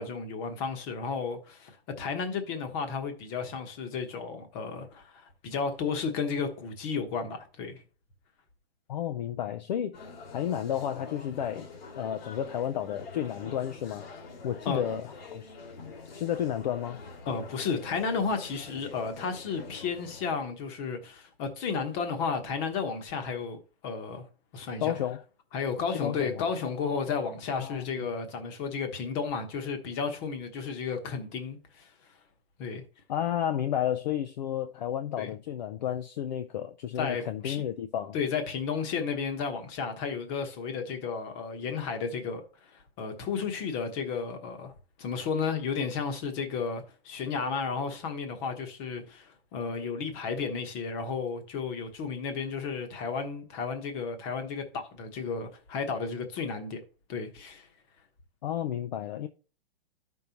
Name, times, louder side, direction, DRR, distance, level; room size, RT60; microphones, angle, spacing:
voice 1, 0.0-1.7 2.0-7.8 14.6-14.8 17.3-23.6 23.8-24.2 24.5-24.9 25.5-31.9 32.6-32.8 35.2-35.3 37.0-37.6 38.1-44.7 45.0-56.8 57.1-57.7, left 5 dB, 25° left, 1.1 m, -33 dB
voice 2, 8.9-10.1 10.3-11.7 11.9-14.0 14.4-15.5 16.1-17.0 24.8-25.2 26.0-26.4 27.5-28.1 33.1-38.2 58.4-59.3, left 10 dB, 45° left, 0.6 m, -32 dB
sound 1, 9.9-20.4, left 4 dB, 70° left, 2.3 m, -45 dB
13.0 x 5.5 x 2.9 m
hypercardioid pair, 165°, 30 cm